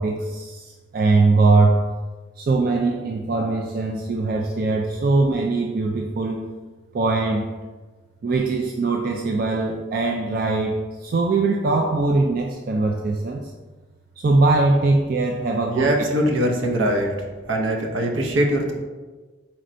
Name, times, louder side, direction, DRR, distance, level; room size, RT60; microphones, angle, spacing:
voice 1, 0.0-1.8 2.4-6.4 6.9-7.5 8.2-13.4 14.2-16.1, right 3 dB, 50° right, 1 dB, 0.3 m, -21 dB
voice 2, 15.7-17.2 17.5-18.7, right 1 dB, 75° right, 2 dB, 0.7 m, -22 dB
4.3 x 2.5 x 4.3 m, 1.3 s
head